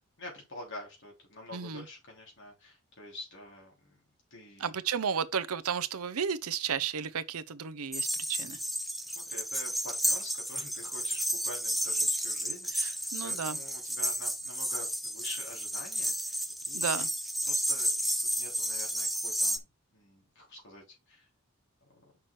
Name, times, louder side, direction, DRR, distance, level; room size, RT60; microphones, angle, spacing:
voice 1, 0.2-4.0 4.3-4.7 9.1-17.1 17.5-17.9 18.2-21.3 21.9-22.1, left 1 dB, 55° left, 3.3 m, -47 dB
voice 2, 1.5-1.8 4.6-8.6 12.7-13.6 16.7-17.1, right 7 dB, 80° right, 0.7 m, -33 dB
sound 1, 7.9-19.6, equal, ahead, 0.4 m, -32 dB
6.0 x 4.6 x 4.6 m
head